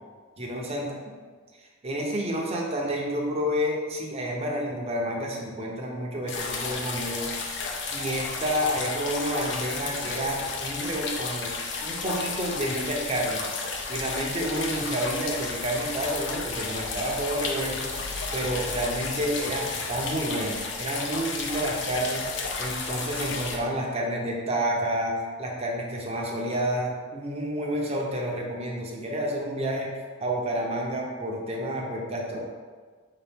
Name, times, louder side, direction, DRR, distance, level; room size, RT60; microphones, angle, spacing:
voice 1, 0.4-0.9 1.8-7.3 7.9-11.5 11.8-13.4 13.9-18.0 18.3-22.3 22.6-29.9 30.2-32.4, equal, 30° right, -1 dB, 0.6 m, -29 dB
sound 1, 6.3-23.6, left 4 dB, 65° left, 0.5 m, -32 dB
4.5 x 2.9 x 3.5 m, 1.5 s
head